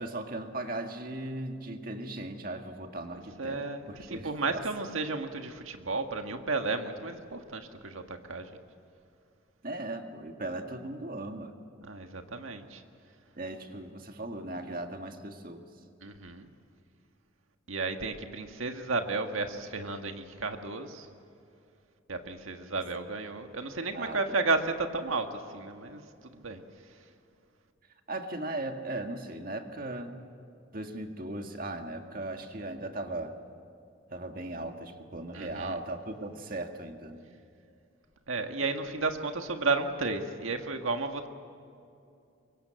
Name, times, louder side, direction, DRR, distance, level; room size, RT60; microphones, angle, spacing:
voice 1, 0.0-4.6 9.6-11.5 13.4-15.7 23.9-24.2 28.1-30.2 30.7-33.4 34.1-37.2, right 2 dB, 45° right, 5 dB, 1.8 m, -38 dB
voice 2, 3.1-8.5 11.8-12.8 16.0-16.5 17.7-21.1 22.1-26.6 35.3-35.7 38.3-41.3, right 3 dB, 85° right, 5 dB, 1.7 m, -33 dB
24.0 x 23.0 x 7.7 m, 2.6 s
head